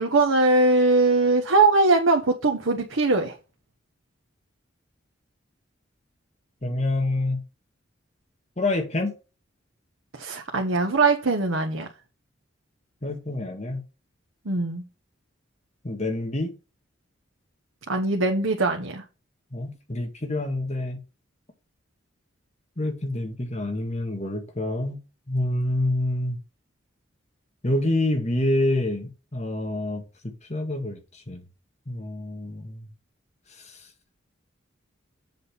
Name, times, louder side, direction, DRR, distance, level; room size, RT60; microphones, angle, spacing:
voice 1, 0.0-3.4 10.1-11.9 14.4-14.8 17.9-19.0, right 3 dB, 85° right, 1.0 m, -21 dB
voice 2, 6.6-7.4 8.6-9.1 13.0-13.8 15.8-16.5 19.5-21.0 22.8-25.0 25.3-26.4 27.6-31.0 31.3-31.4 31.9-32.9, left 1 dB, 35° left, 1.7 m, -27 dB
7.7 x 4.1 x 5.5 m
head